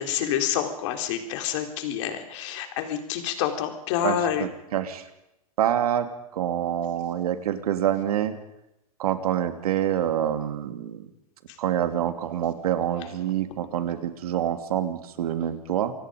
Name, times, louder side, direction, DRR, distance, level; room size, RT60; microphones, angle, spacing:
voice 1, 0.0-4.5, left 10 dB, 55° left, 5 dB, 3.9 m, -28 dB
voice 2, 4.7-5.0 5.6-6.1 6.3-8.3 9.0-11.0 11.6-15.9, right 10 dB, 75° right, 8 dB, 2.7 m, -26 dB
27.0 x 19.5 x 5.1 m, 0.85 s
supercardioid pair, 150°, 19 cm